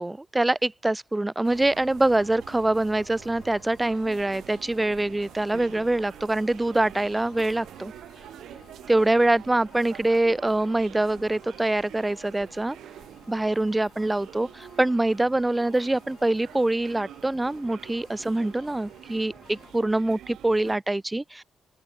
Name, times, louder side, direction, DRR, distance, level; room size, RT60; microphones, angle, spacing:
voice 1, 0.0-7.9 8.9-12.8 13.3-21.4, right 2 dB, 10° right, 0.6 m, -24 dB
sound 1, 1.4-20.8, right 11 dB, 85° right, 3.5 m, -46 dB
sound 2, 1.6-9.0, left 10 dB, 70° left, 7.5 m, -64 dB
sound 3, 2.2-19.7, left 6 dB, 35° left, 2.7 m, -55 dB
open air
wide cardioid pair, 180°, 0 cm